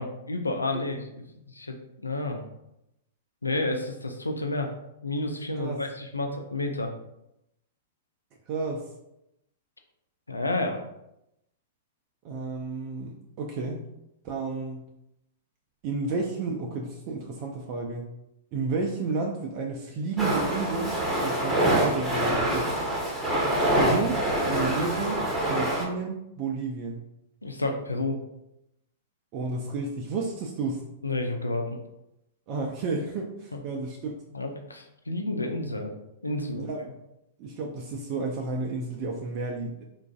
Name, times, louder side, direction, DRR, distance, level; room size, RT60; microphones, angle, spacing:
voice 1, 0.0-1.8 2.0-2.4 3.4-4.7 5.0-6.9 10.3-10.8 27.4-28.2 31.0-31.8 33.5-33.6 34.3-35.9 36.2-36.7, left 2 dB, 85° left, 4 dB, 0.4 m, -30 dB
voice 2, 8.5-8.8 12.2-13.8 14.2-14.8 15.8-18.1 18.5-22.8 23.7-24.2 24.5-27.0 29.3-30.8 32.5-34.1 36.5-36.8 37.4-39.8, right 4 dB, 40° right, 0 dB, 0.4 m, -31 dB
sound 1, 20.2-25.9, right 1 dB, 5° right, 0.9 m, -25 dB
3.8 x 2.4 x 2.3 m, 0.86 s
figure-of-eight pair, 105°, 0 cm